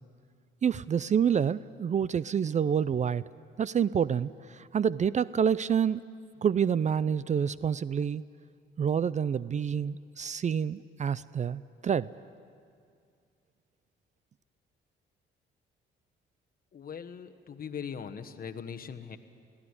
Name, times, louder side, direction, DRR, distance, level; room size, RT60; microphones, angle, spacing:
voice 1, 0.6-3.2 3.6-6.0 6.4-8.2 8.8-12.1, right 7 dB, 35° right, 18 dB, 0.5 m, -28 dB
voice 2, 16.7-19.2, left 7 dB, 50° left, 8 dB, 1.3 m, -40 dB
22.5 x 16.0 x 9.8 m, 2.3 s
cardioid pair, 90°, 20 cm